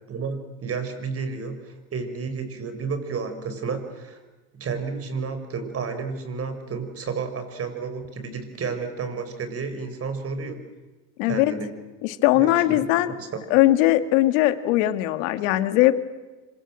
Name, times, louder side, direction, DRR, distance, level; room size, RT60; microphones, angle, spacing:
voice 1, 0.1-4.2 4.5-10.6 11.2-11.7 12.3-13.3, right 5 dB, 35° right, 8 dB, 6.0 m, -31 dB
voice 2, 11.2-11.5 12.0-13.1 13.5-16.0, left 15 dB, 80° left, 10 dB, 2.2 m, -20 dB
27.0 x 25.5 x 7.7 m, 1.2 s
supercardioid pair, 110°, 39 cm